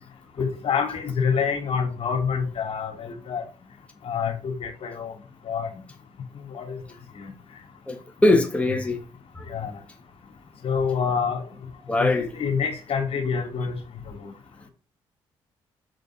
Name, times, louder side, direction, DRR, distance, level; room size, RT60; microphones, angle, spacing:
voice 1, 0.4-3.4 4.1-5.1 5.5-5.7 6.5-6.8 7.2-7.3 8.3-8.4 9.5-9.7 10.6-11.4 12.0-13.7, left 6 dB, 60° left, 2.1 m, -26 dB
voice 2, 7.9-9.0 11.9-12.3, left 2 dB, 10° left, 1.3 m, -21 dB
6.7 x 3.9 x 5.7 m
supercardioid pair, 65°, 11 cm